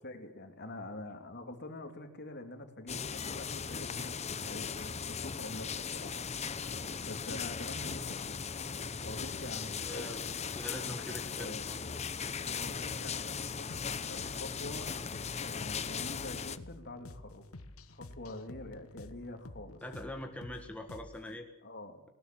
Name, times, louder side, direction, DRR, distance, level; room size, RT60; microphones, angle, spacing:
voice 1, 0.0-6.7 7.0-8.4 9.0-10.1 10.9-11.8 12.4-13.7 14.0-14.9 15.4-17.4 17.9-19.8 21.6-22.0, left 2 dB, 50° left, 6 dB, 2.9 m, -46 dB
sound 1, 2.9-16.6, left 6 dB, 30° left, 0.8 m, -38 dB
voice 2, 9.6-10.2 10.6-11.8 19.8-21.5, left 1 dB, 5° left, 3 dB, 1.6 m, -43 dB
sound 2, 13.7-21.4, left 2 dB, 65° left, 1.3 m, -50 dB
19.5 x 19.0 x 7.7 m, 0.91 s
head